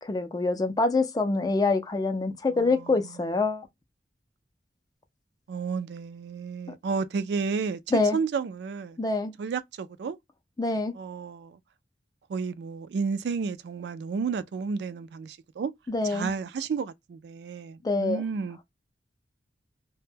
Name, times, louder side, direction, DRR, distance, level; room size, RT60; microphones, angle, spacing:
voice 1, 0.0-3.7 7.9-8.2 9.0-9.3 10.6-11.0 15.9-16.3 17.8-18.2, left 3 dB, 20° left, 0.4 m, -25 dB
voice 2, 2.5-3.3 5.5-9.0 9.4-10.2 10.9-11.6 12.3-15.7 16.0-18.6, right 5 dB, 65° right, 0.3 m, -32 dB
2.1 x 2.1 x 3.1 m
head